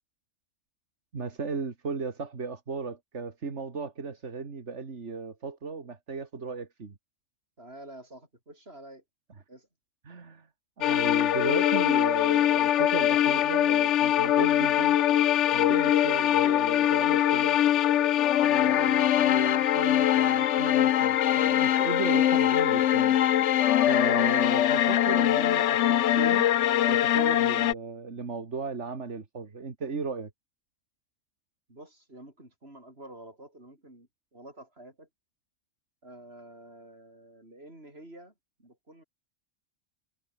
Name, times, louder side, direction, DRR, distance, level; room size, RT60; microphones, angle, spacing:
voice 1, 1.1-7.0 10.0-10.5 10.8-15.0 15.5-17.6 18.4-23.2 23.9-26.5 26.9-30.3, right 4 dB, 75° right, 2.4 m, -36 dB
voice 2, 7.6-9.0 9.5-9.7 31.7-35.1 36.0-38.3 38.6-39.0, right 1 dB, 60° right, 8.2 m, -49 dB
sound 1, 10.8-27.7, left 11 dB, 80° left, 1.0 m, -23 dB
omnidirectional pair, 1.2 m